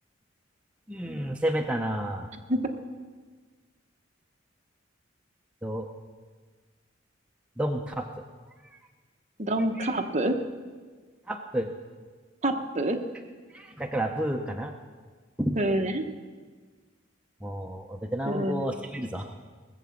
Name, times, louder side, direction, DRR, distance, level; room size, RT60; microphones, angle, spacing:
voice 1, 0.9-2.3 5.6-5.9 7.6-8.1 9.8-9.9 11.3-11.7 13.5-14.7 15.4-15.6 17.4-19.3, right 1 dB, 5° right, 2 dB, 0.6 m, -30 dB
voice 2, 9.4-10.4 12.4-13.0 15.5-16.0 18.2-18.7, right 1 dB, 35° right, 5 dB, 1.0 m, -27 dB
19.5 x 7.5 x 7.1 m, 1.5 s
head